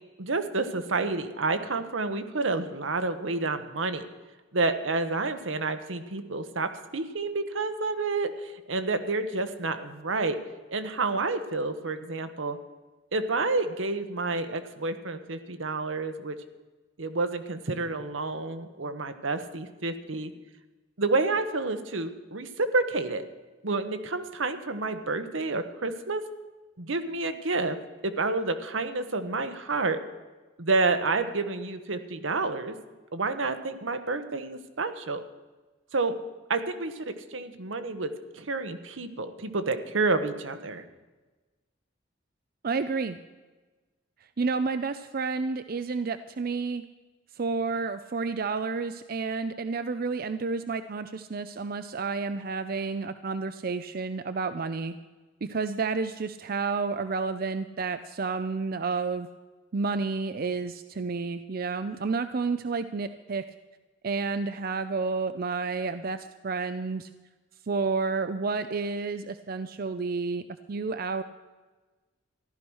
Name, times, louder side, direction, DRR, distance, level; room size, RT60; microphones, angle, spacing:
voice 1, 0.2-4.0 4.5-10.4 10.7-12.6 13.1-16.4 17.0-20.3 21.0-23.3 23.6-26.2 26.8-27.8 28.0-30.0 30.6-32.8 33.1-35.2 35.9-36.1 36.5-40.8, right 3 dB, 80° right, 9 dB, 1.1 m, -29 dB
voice 2, 42.6-43.2 44.4-46.8 47.4-55.0 55.4-59.3 59.7-63.4 64.0-67.1 67.7-70.4 70.7-71.2, right 4 dB, 50° right, 11 dB, 0.5 m, -30 dB
14.5 x 11.5 x 6.3 m, 1.2 s
head